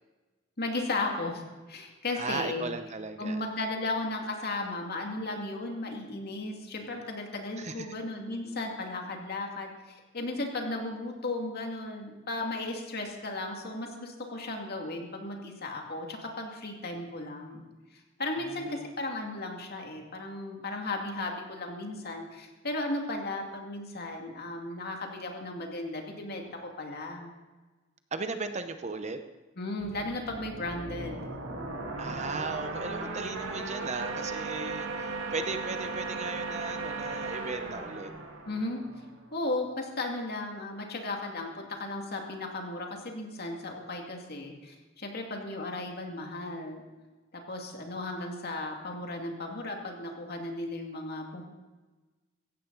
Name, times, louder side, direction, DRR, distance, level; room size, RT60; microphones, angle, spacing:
voice 1, 0.6-1.4 1.7-2.7 3.2-17.6 17.9-27.3 29.6-31.4 38.5-38.8 39.3-46.8 47.3-51.5, left 2 dB, 50° left, 2 dB, 2.4 m, -35 dB
voice 2, 2.1-3.4 7.6-7.9 18.4-18.9 28.1-29.2 32.0-38.1, right 4 dB, 35° right, 8 dB, 0.9 m, -36 dB
sound 1, 29.8-39.3, right 3 dB, 75° right, 2.3 m, -37 dB
16.5 x 15.0 x 4.1 m, 1.2 s
head